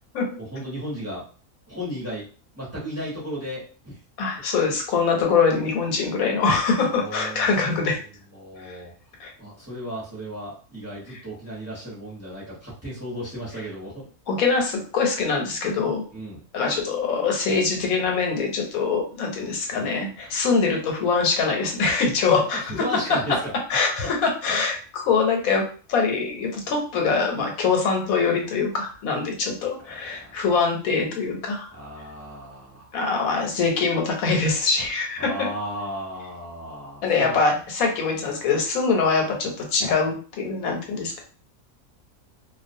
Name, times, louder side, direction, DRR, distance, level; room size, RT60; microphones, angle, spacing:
voice 1, 0.4-1.2 1.7-2.3 2.6-4.0 6.8-7.6 8.3-8.9 9.4-14.1 16.1-16.4 22.5-23.5 29.9-30.4 31.7-32.9 35.2-37.4, equal, 15° right, -6 dB, 0.8 m, -35 dB
voice 2, 4.2-8.0 8.6-8.8 9.2-9.3 14.3-16.0 16.5-22.6 23.7-25.6 25.9-31.7 32.9-35.3 37.0-41.2, left 4 dB, 85° left, 2 dB, 1.1 m, -23 dB
2.3 x 2.2 x 2.6 m, 0.40 s
omnidirectional pair, 1.4 m